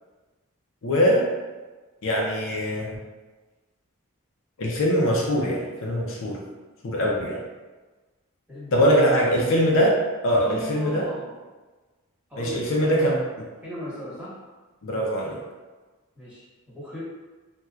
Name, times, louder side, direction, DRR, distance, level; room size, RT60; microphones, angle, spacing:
voice 1, 0.8-1.3 2.0-3.0 4.6-6.4 6.8-7.4 8.7-10.0 10.2-11.1 12.4-13.5 14.8-15.4, equal, 65° left, -2 dB, 0.5 m, -22 dB
voice 2, 8.5-9.2 10.4-11.3 12.3-13.2 13.6-14.4 16.1-17.0, equal, 5° right, -11 dB, 1.4 m, -38 dB
4.2 x 2.2 x 2.4 m, 1.3 s
head